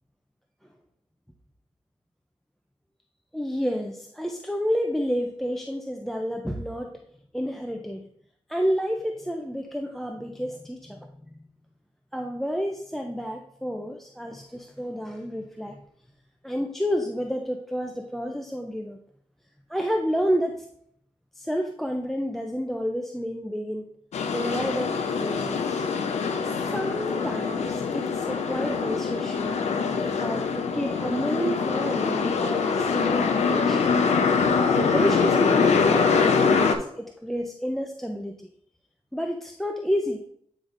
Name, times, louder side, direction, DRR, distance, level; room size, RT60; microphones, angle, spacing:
voice 1, 3.3-7.0 7.3-8.1 8.5-11.4 12.1-15.8 16.4-19.0 19.7-20.7 21.4-23.9 24.3-25.9 26.4-29.6 30.2-33.9 34.7-38.4 39.1-40.2, equal, ahead, 3 dB, 0.5 m, -30 dB
sound 1, 24.1-36.8, left 5 dB, 80° left, 0.7 m, -24 dB
8.8 x 4.9 x 2.6 m, 0.68 s
wide cardioid pair, 100°, 11 cm